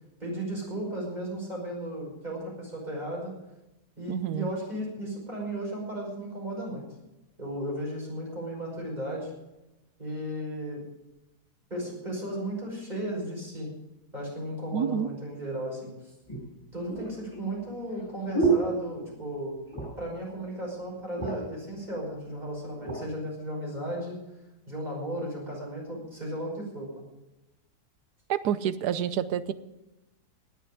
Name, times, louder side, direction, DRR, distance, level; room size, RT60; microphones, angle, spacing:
voice 1, 0.2-3.3 4.0-6.8 7.4-9.3 10.0-10.8 11.7-13.7 14.1-16.1 16.7-19.6 20.0-24.2 24.7-27.0, right 1 dB, 25° right, -2 dB, 5.7 m, -35 dB
voice 2, 4.1-4.5 14.7-15.1 28.3-29.5, right 9 dB, 80° right, 15 dB, 1.3 m, -28 dB
sound 1, 15.3-15.4 16.3-19.4 19.7-20.1 20.5-20.6 20.9-21.6 22.3-23.0 23.7-23.9, right 4 dB, 15° left, 7.4 m, -31 dB
19.0 x 6.8 x 9.9 m, 0.96 s
omnidirectional pair, 1.7 m